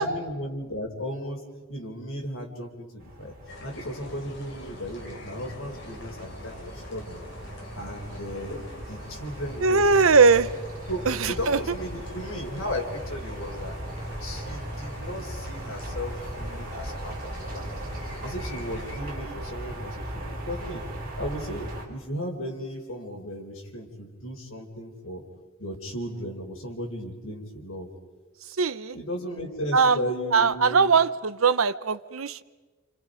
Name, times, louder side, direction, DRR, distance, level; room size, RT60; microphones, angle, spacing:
voice 1, 0.0-1.4 1.7-3.3 3.6-7.2 7.8-10.1 10.9-13.8 14.2-17.8 18.2-20.8 21.2-25.2 25.6-27.9 28.9-31.0, equal, 80° left, 2 dB, 4.4 m, -35 dB
sound 1, 3.0-21.9, right 1 dB, 45° right, 5.0 m, -38 dB
sound 2, 3.5-19.0, left 1 dB, 60° left, 4.5 m, -45 dB
voice 2, 9.6-10.5 11.1-11.6 28.6-28.9 29.7-30.0 30.3-32.4, right 5 dB, 80° right, 14 dB, 0.9 m, -20 dB
30.0 x 29.0 x 5.2 m, 1.3 s
head